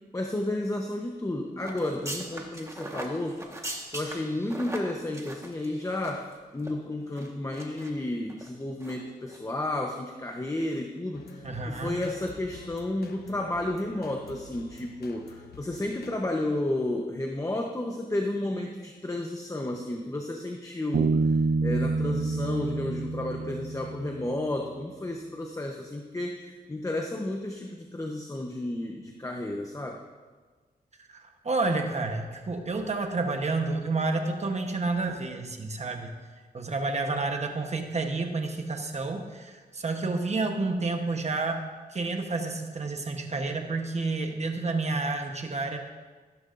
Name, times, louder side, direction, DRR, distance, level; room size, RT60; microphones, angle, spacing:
voice 1, 0.1-3.4 3.9-6.3 6.5-21.2 21.6-30.0, left 1 dB, 20° left, 2 dB, 0.9 m, -32 dB
sound 1, 1.6-6.3 6.6-6.7 7.2-7.9 8.3-8.5 8.8-9.0 9.3-9.4, right 1 dB, 20° right, 1.4 m, -40 dB
sound 2, 11.1-16.2, left 5 dB, 80° left, 1.0 m, -49 dB
voice 2, 11.4-12.0 31.1-36.1 36.5-41.6 41.9-45.8, right 3 dB, 45° right, 4 dB, 1.0 m, -30 dB
Bass guitar, 20.9-24.4, right 4 dB, 70° right, 0.5 m, -27 dB
15.0 x 12.0 x 2.6 m, 1.4 s
wide cardioid pair, 105°, 16 cm